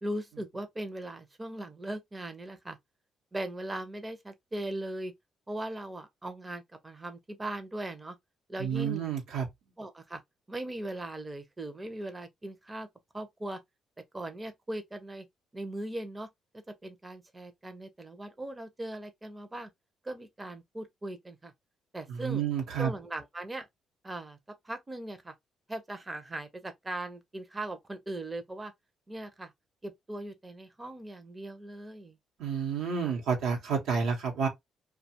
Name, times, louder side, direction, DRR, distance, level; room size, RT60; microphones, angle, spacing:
voice 1, 0.0-2.8 3.3-5.1 5.5-8.2 8.5-9.0 9.8-10.2 10.5-12.9 13.1-13.6 14.1-15.3 15.5-19.7 20.0-21.5 21.9-22.4 22.8-23.7 24.0-24.4 24.6-25.3 25.7-28.7 29.1-29.5 29.8-32.2 33.0-33.2, right 1 dB, 20° right, 0.5 m, -39 dB
voice 2, 8.6-9.5 22.1-22.9 32.4-34.5, right 6 dB, 85° right, 0.9 m, -30 dB
2.4 x 2.2 x 2.7 m
cardioid pair, 90°, 0 cm